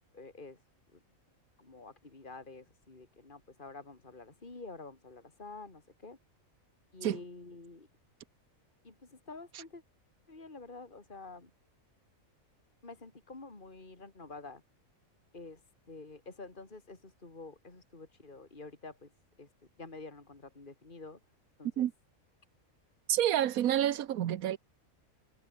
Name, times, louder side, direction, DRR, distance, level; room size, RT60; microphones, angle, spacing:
voice 1, 0.1-0.6 0.9-1.0 1.6-6.2 6.9-7.9 8.8-9.8 10.3-11.5 12.8-14.6 15.3-15.6 15.9-19.1 19.4-19.5 19.8-21.2 21.6-21.9, left 3 dB, 35° left, 3.2 m, -48 dB
voice 2, 23.1-24.6, right 11 dB, 90° right, 1.3 m, -29 dB
omnidirectional pair, 1.5 m